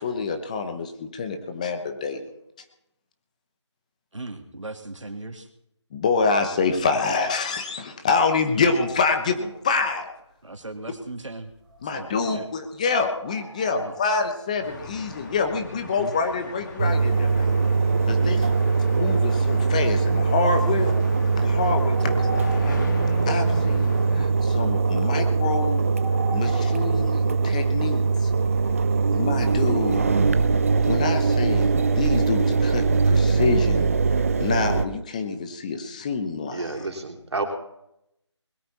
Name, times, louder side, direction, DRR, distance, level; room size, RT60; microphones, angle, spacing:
voice 1, 0.0-2.2 5.9-10.1 11.8-17.5 18.1-18.4 18.9-20.9 21.4-22.8 23.3-25.8 26.3-28.3 29.1-30.2 30.8-33.9 34.1-36.9, left 4 dB, 15° left, 6 dB, 0.9 m, -26 dB
voice 2, 4.1-5.5 10.4-11.5 11.8-12.5 13.6-14.0 16.0-16.1 18.1-18.6 27.6-27.7, right 2 dB, 90° right, 6 dB, 2.5 m, -38 dB
sound 1, 8.6-9.9 11.0-12.3 13.0-14.6 14.9-15.0 16.4-16.5 17.0-17.1 17.3-17.4 17.9-18.3 18.8-18.9 19.2-19.5 20.4-20.5 21.0-23.4 25.8-27.8, right 1 dB, 5° right, 3.5 m, -41 dB
sound 2, 14.6-24.3, left 3 dB, 40° left, 2.6 m, -38 dB
Engine, 16.8-34.9, right 4 dB, 30° right, 0.7 m, -21 dB
voice 3, 36.5-37.4, right 3 dB, 65° right, 3 dB, 3.5 m, -30 dB
21.0 x 13.0 x 4.2 m, 0.80 s
figure-of-eight pair, 165°, 15 cm